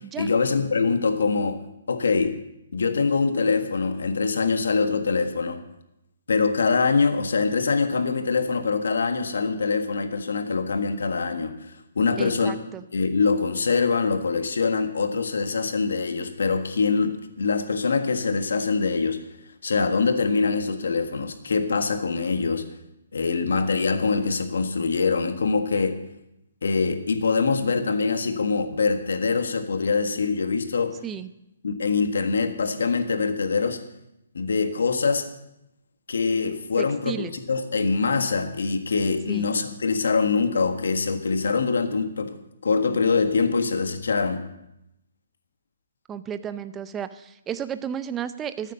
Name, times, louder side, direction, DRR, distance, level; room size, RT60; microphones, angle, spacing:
voice 1, 0.2-1.6 1.9-2.4 2.7-5.6 6.3-12.5 12.9-19.2 19.6-22.6 23.1-26.0 26.6-30.9 31.6-33.8 34.3-35.3 36.1-44.4, left 4 dB, 80° left, 7 dB, 1.6 m, -24 dB
voice 2, 12.2-12.8 31.0-31.3 36.8-37.3 39.3-39.5 46.1-48.7, right 8 dB, 15° right, 12 dB, 0.6 m, -33 dB
14.0 x 9.1 x 6.7 m, 0.85 s
hypercardioid pair, 150°, 0 cm